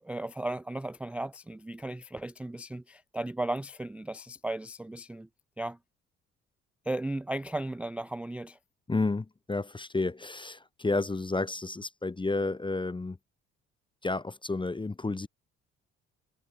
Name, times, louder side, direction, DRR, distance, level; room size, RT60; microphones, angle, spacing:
voice 1, 0.0-5.3 5.6-5.8 6.9-8.6, right 1 dB, 5° right, 0.4 m, -35 dB
voice 2, 8.9-13.2 14.0-15.3, left 3 dB, 15° left, 1.0 m, -31 dB
figure-of-eight pair, 45°, 34 cm